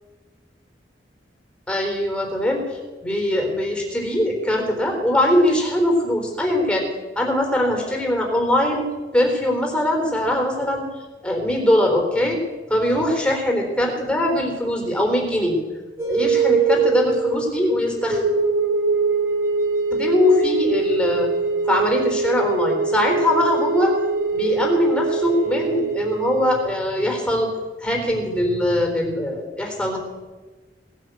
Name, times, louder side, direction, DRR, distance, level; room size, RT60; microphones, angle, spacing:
voice 1, 1.7-6.9 7.2-8.9 9.1-10.9 11.2-12.4 12.7-15.6 16.1-18.2 19.9-21.3 21.7-23.9 24.3-27.5 27.8-30.0, left 1 dB, 5° left, 2 dB, 3.8 m, -21 dB
sound 1, 16.0-26.6, right 4 dB, 15° right, 4.1 m, -23 dB
18.5 x 9.4 x 8.2 m, 1.3 s
head